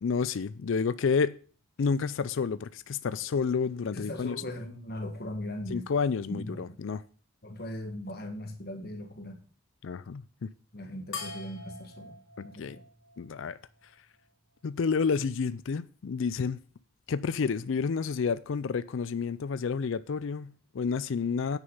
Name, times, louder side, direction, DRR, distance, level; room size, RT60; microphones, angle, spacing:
voice 1, 0.0-1.4 1.8-4.4 5.7-7.0 9.8-10.5 12.6-12.8 13.2-13.6 14.6-16.6 17.1-21.6, left 5 dB, 65° left, 0.4 m, -30 dB
voice 2, 3.9-5.9 6.3-6.8 7.4-9.4 10.7-12.7, left 1 dB, 45° left, 1.5 m, -39 dB
sound 1, 11.1-13.9, left 4 dB, 80° left, 3.0 m, -44 dB
9.1 x 6.5 x 5.5 m
head